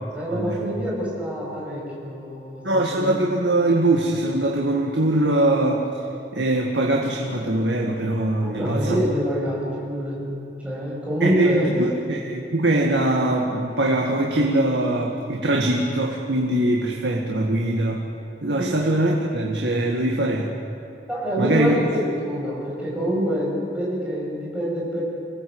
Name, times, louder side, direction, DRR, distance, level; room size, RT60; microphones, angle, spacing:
voice 1, 0.1-3.3 8.4-10.3 10.6-11.8 18.6-18.7 21.1-25.0, equal, 10° right, -6 dB, 7.4 m, -26 dB
voice 2, 2.6-5.9 6.3-8.9 11.2-18.0 18.4-20.5 21.4-21.7, right 1 dB, 80° right, 0 dB, 2.0 m, -22 dB
26.5 x 18.0 x 8.0 m, 2.6 s
head